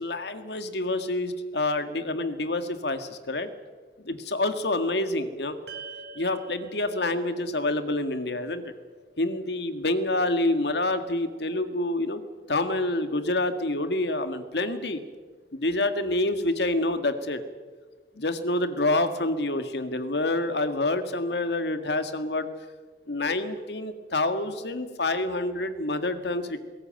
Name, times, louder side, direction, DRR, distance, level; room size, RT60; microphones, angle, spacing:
voice 1, 0.0-3.5 4.0-5.6 6.2-8.7 9.2-12.2 12.5-15.0 15.5-17.4 18.2-22.5 23.1-26.6, left 2 dB, 75° left, 9 dB, 1.8 m, -27 dB
sound 1, 5.7-10.1, right 4 dB, 75° right, 4.2 m, -47 dB
20.5 x 17.5 x 9.1 m, 1.4 s
head